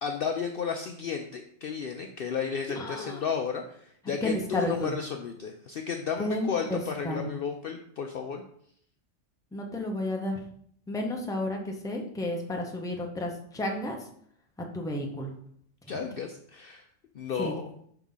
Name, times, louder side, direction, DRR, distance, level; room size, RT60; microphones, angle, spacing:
voice 1, 0.0-8.4 15.9-16.8 17.1-17.7, left 6 dB, 60° left, 4 dB, 0.6 m, -33 dB
voice 2, 2.7-3.3 4.2-5.0 6.2-7.3 9.5-10.4 10.9-14.0 14.7-15.3 17.4-17.5, left 1 dB, 5° left, 1 dB, 0.7 m, -32 dB
5.7 x 3.6 x 5.5 m, 0.65 s
omnidirectional pair, 1.3 m